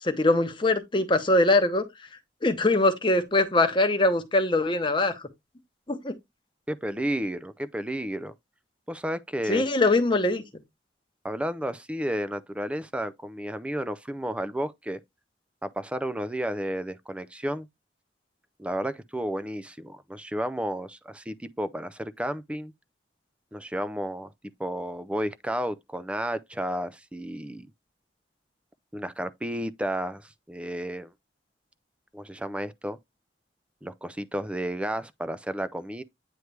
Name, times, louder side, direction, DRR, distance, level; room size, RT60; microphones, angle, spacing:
voice 1, 0.0-1.8 2.4-5.3 5.9-6.1 9.5-10.4, left 2 dB, 25° left, 0.9 m, -22 dB
voice 2, 6.7-8.3 8.9-9.6 11.2-15.0 15.6-17.7 18.6-22.7 23.5-24.3 24.6-27.7 28.9-31.1 32.1-33.0 33.8-36.0, right 1 dB, 5° right, 0.3 m, -32 dB
9.2 x 3.1 x 3.3 m
head